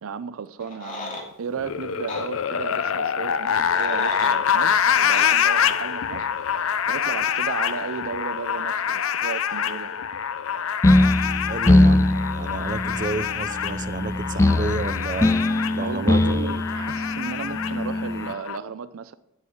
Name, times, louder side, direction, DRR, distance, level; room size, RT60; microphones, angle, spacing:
voice 1, 0.0-10.0 15.8-19.1, right 6 dB, 75° right, 0.4 m, -34 dB
sound 1, 0.6-1.3 2.1-2.3 3.4-4.4 5.1-5.3, left 2 dB, 40° left, 2.7 m, -35 dB
sound 2, 1.6-18.6, left 8 dB, 75° left, 0.5 m, -26 dB
sound 3, 10.8-18.3, left 1 dB, 15° left, 0.3 m, -21 dB
voice 2, 11.5-15.3 15.7-16.5, right 3 dB, 40° right, 0.6 m, -31 dB
9.4 x 8.2 x 6.3 m
head